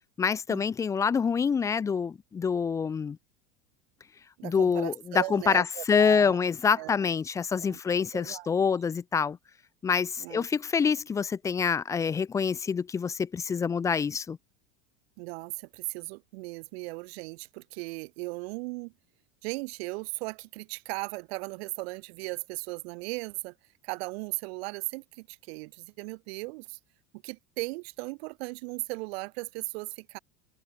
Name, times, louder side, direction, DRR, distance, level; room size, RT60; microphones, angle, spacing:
voice 1, 0.2-3.2 4.4-9.4 9.8-14.4, left 6 dB, 10° left, 0.3 m, -26 dB
voice 2, 4.4-6.4 6.7-7.1 7.5-7.8 8.1-8.6 10.2-10.5 15.2-18.9 19.4-23.5 23.8-26.8 27.2-30.2, right 26 dB, 70° right, 6.3 m, -37 dB
cardioid pair, 160°, 32 cm